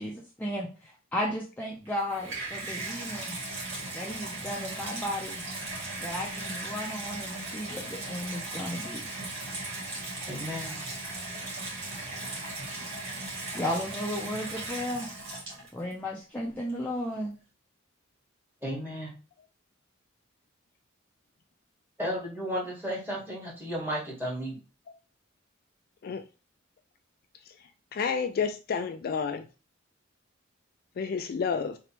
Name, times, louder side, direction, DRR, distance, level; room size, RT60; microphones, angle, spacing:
voice 1, 0.0-3.4 3.9-5.4 6.0-9.0 13.5-15.1 15.7-17.4, left 1 dB, 10° left, 0.6 m, -34 dB
Water tap faucet / Bathtub (filling or washing), 1.8-15.9 16.7-16.8, right 2 dB, 70° right, 2.1 m, -37 dB
voice 2, 10.3-10.8 18.6-19.1 22.0-24.6, equal, 10° right, 1.6 m, -33 dB
voice 3, 27.9-29.5 31.0-31.8, left 6 dB, 50° left, 0.3 m, -30 dB
3.9 x 3.3 x 2.9 m
head